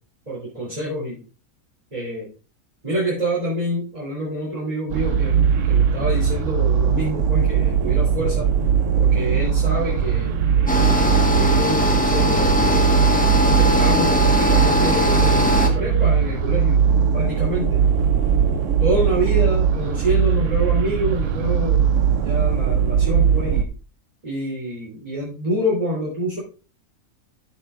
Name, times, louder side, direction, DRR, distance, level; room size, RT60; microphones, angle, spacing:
voice 1, 0.3-1.2 1.9-2.3 2.8-8.5 9.0-10.8 11.1-12.8 13.6-16.8 17.1-17.8 18.8-23.7 24.2-26.4, right 1 dB, 25° right, -7 dB, 3.2 m, -27 dB
sound 1, 4.9-23.6, right 7 dB, 60° right, 1.0 m, -19 dB
sound 2, 10.7-15.7, left 1 dB, 5° left, 1.2 m, -20 dB
12.0 x 6.9 x 2.5 m, 0.36 s
omnidirectional pair, 1.6 m